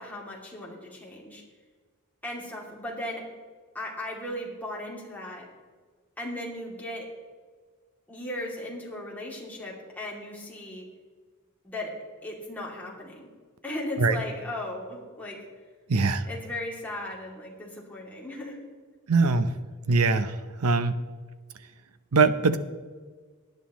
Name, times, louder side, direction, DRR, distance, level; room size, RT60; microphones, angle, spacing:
voice 1, 0.0-1.4 2.2-3.2 3.7-5.5 6.2-7.1 8.1-10.9 11.6-11.9 12.2-13.3 13.6-15.5 16.3-18.6, left 1 dB, 5° left, -4 dB, 2.6 m, -37 dB
voice 2, 15.9-16.2 19.1-19.5 19.9-20.3 20.6-21.0 22.1-22.6, right 4 dB, 80° right, 12 dB, 0.7 m, -21 dB
18.5 x 10.5 x 3.1 m, 1.5 s
head